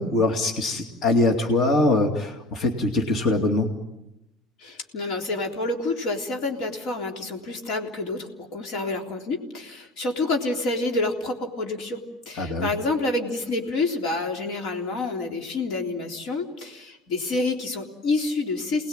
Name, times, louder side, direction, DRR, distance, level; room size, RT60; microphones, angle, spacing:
voice 1, 0.0-3.7 12.4-12.7, left 2 dB, 30° left, 4 dB, 2.5 m, -22 dB
voice 2, 4.6-18.9, left 2 dB, 50° left, 3 dB, 3.6 m, -28 dB
28.5 x 20.0 x 9.0 m, 0.90 s
cardioid pair, 180°, 0 cm